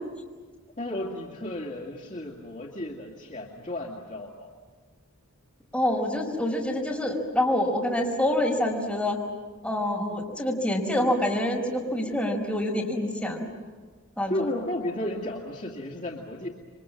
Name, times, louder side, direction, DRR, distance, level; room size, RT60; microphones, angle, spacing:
voice 1, 0.8-4.5 14.3-16.5, left 1 dB, 35° left, -2 dB, 2.4 m, -33 dB
voice 2, 5.7-9.2 9.6-13.4 14.2-14.3, left 1 dB, 5° left, -2 dB, 5.2 m, -26 dB
29.0 x 24.0 x 7.6 m, 1.4 s
head